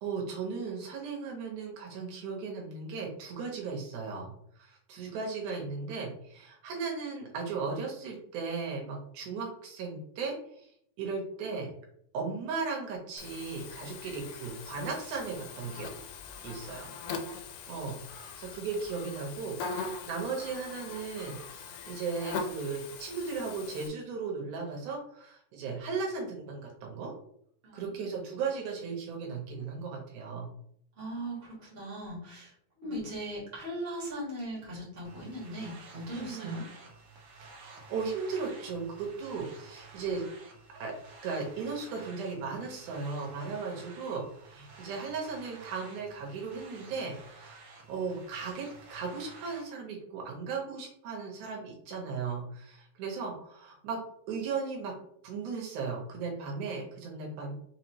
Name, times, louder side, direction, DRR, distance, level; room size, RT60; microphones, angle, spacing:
voice 1, 0.0-4.3 4.6-10.7 11.0-11.7 12.1-15.9 16.4-16.9 17.7-27.1 27.7-30.5 32.8-33.0 36.1-36.6 37.4-40.3 40.7-40.9 41.2-47.5 47.9-54.0 54.3-54.9 55.2-57.5, right 4 dB, 70° right, 0 dB, 2.3 m, -36 dB
Buzz, 13.2-23.9, left 4 dB, 90° left, 2.1 m, -41 dB
voice 2, 16.3-17.2 27.6-28.0 30.9-36.6, right 1 dB, 40° right, -6 dB, 0.8 m, -39 dB
sound 1, 35.0-49.6, right 3 dB, 90° right, 1.2 m, -52 dB
5.5 x 2.3 x 2.9 m, 0.69 s
omnidirectional pair, 3.6 m